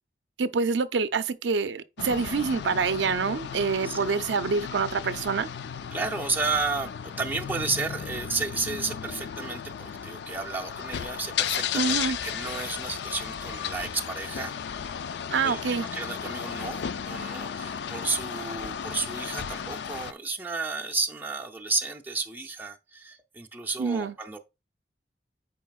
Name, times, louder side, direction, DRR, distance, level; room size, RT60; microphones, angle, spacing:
voice 1, 0.4-5.5 11.7-12.2 15.3-15.9 23.8-24.1, right 5 dB, 80° right, 0.5 m, -26 dB
sound 1, 2.0-20.1, left 8 dB, 70° left, 0.4 m, -34 dB
voice 2, 5.9-14.7 15.4-24.4, right 3 dB, 10° right, 0.6 m, -32 dB
9.1 x 4.7 x 2.3 m
head